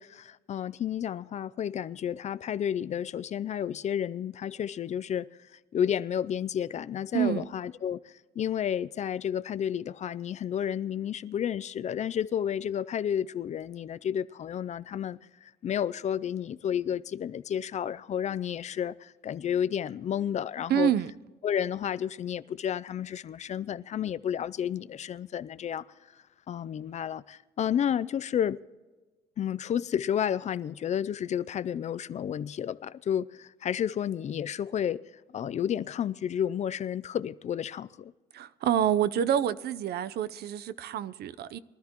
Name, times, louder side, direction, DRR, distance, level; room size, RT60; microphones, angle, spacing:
voice 1, 0.0-5.3 5.7-20.9 21.4-25.8 26.5-28.6 29.4-35.0 35.3-38.1, left 9 dB, 40° left, 0.4 m, -31 dB
voice 2, 7.1-7.4 20.7-21.1 38.3-41.6, right 10 dB, 70° right, 0.6 m, -27 dB
23.5 x 13.0 x 3.0 m
cardioid pair, 130°, 17 cm